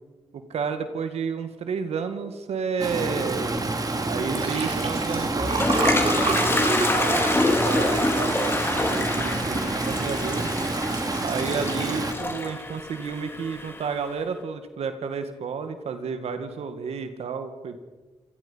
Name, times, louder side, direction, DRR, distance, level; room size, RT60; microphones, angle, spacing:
voice 1, 0.3-3.6 4.0-10.5 11.2-17.8, right 5 dB, 80° right, 8 dB, 2.0 m, -31 dB
Stream, 2.8-12.1, right 2 dB, 35° right, 3.2 m, -28 dB
Liquid, 4.2-8.8 9.3-9.6 9.8-9.9, right 3 dB, 65° right, 4.7 m, -29 dB
Toilet flush, 5.1-14.0, left 2 dB, 20° left, 3.5 m, -27 dB
27.5 x 18.0 x 5.7 m, 1.2 s
cardioid pair, 60°, 11 cm